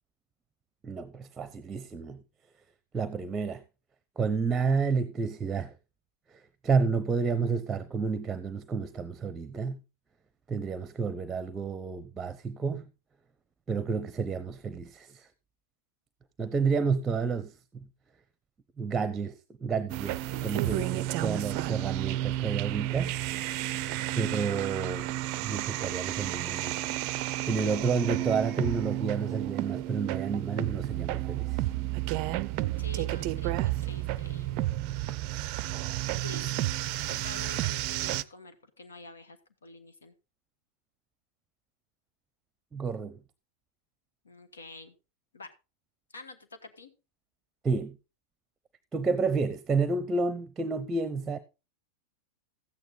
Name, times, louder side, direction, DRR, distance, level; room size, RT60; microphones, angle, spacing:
voice 1, 0.8-2.2 2.9-3.6 4.2-5.7 6.6-9.8 10.5-12.8 13.7-15.3 16.4-17.5 18.8-23.2 24.2-25.1 25.4-26.9 27.5-31.6 42.7-43.2 47.6-48.0 48.9-51.4, right 5 dB, 15° right, 0.8 m, -30 dB
sound 1, 19.9-38.2, right 15 dB, 45° right, 0.5 m, -31 dB
voice 2, 23.6-24.0 32.8-34.7 36.2-36.5 37.1-40.1 44.2-44.9 45.3-45.5 46.1-46.9, left 3 dB, 70° left, 1.4 m, -47 dB
13.5 x 9.1 x 4.0 m
figure-of-eight pair, 90°, 0 cm